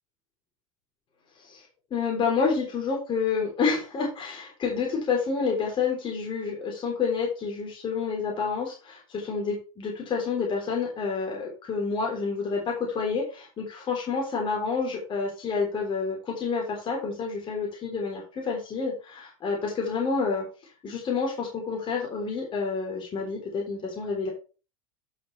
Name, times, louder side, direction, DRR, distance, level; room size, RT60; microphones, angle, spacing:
voice 1, 1.9-20.4 20.8-24.3, left 5 dB, 30° left, 0 dB, 3.6 m, -29 dB
11.0 x 6.8 x 3.3 m, 0.33 s
hypercardioid pair, 85°, 17 cm